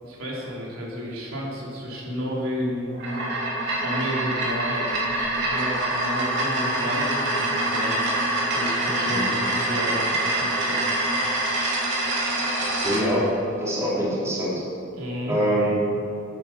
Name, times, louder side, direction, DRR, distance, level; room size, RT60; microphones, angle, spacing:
voice 1, 0.0-3.0 3.8-4.8 5.4-8.0 8.5-10.8 14.9-15.4, equal, 85° right, -5 dB, 3.3 m, -32 dB
sound 1, 2.9-13.0, right 1 dB, 60° right, 3.3 m, -25 dB
voice 2, 12.8-13.3 13.6-14.6 15.3-15.8, equal, 15° right, -7 dB, 3.5 m, -24 dB
10.5 x 9.9 x 7.3 m, 2.8 s
head